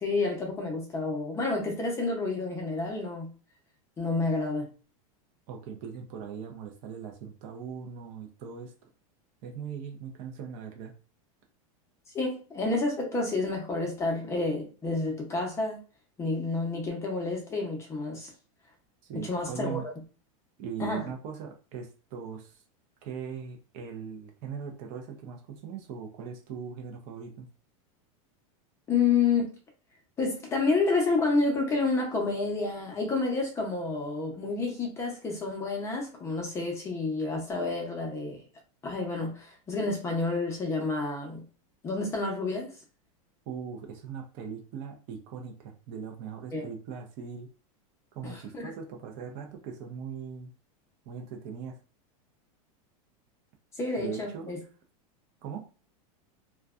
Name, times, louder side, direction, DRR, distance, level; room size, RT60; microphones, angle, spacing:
voice 1, 0.0-3.3 4.0-4.7 12.1-15.8 16.2-18.3 19.1-19.8 20.8-21.1 28.9-29.5 30.2-38.4 38.8-41.4 41.8-42.7 46.5-46.7 48.2-48.7 53.8-54.6, left 3 dB, 15° left, 0.6 m, -29 dB
voice 2, 5.5-8.7 9.4-10.9 19.0-19.8 20.6-22.6 23.0-27.5 43.5-47.5 48.1-50.5 51.1-51.8 54.0-54.5 55.4-55.6, right 6 dB, 40° right, 0.5 m, -40 dB
2.5 x 2.1 x 2.3 m
supercardioid pair, 155°, 18 cm